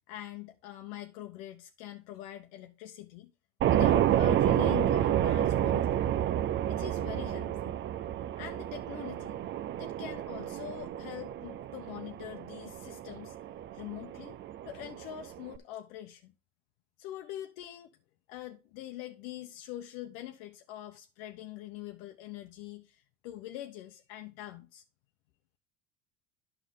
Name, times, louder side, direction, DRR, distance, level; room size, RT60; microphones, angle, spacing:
voice 1, 0.0-3.3 3.7-6.1 6.7-7.8 8.4-9.4 9.8-13.4 13.7-14.4 14.6-16.3 17.0-17.9 18.3-24.8, left 13 dB, 70° left, 0.9 m, -43 dB
sound 1, 3.6-15.6, right 11 dB, 30° right, 0.4 m, -30 dB
9.3 x 6.8 x 3.7 m
supercardioid pair, 105°, 39 cm